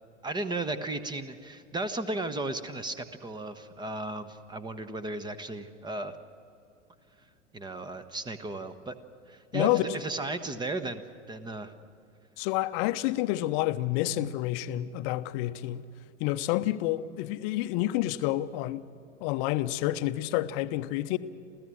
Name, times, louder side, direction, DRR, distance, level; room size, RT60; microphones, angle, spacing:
voice 1, 0.2-6.2 7.5-8.9 9.3-11.7, right 2 dB, 10° right, 1.1 m, -35 dB
voice 2, 9.5-10.0 12.4-15.9 16.2-18.8 19.2-21.2, left 15 dB, 45° left, 0.8 m, -29 dB
28.0 x 15.5 x 6.3 m
figure-of-eight pair, 90°, 36 cm